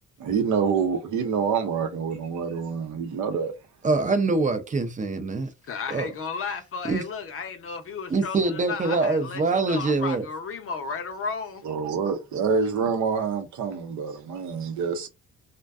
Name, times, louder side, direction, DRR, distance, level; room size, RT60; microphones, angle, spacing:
voice 1, 0.2-3.5 11.6-15.1, right 6 dB, 70° right, 0.7 m, -26 dB
voice 2, 3.8-5.5 5.9-6.1 6.8-7.0 8.1-10.2, right 3 dB, 25° right, 0.5 m, -24 dB
voice 3, 5.6-11.6, left 5 dB, 45° left, 0.6 m, -34 dB
2.5 x 2.2 x 2.3 m
cardioid pair, 90°, 30 cm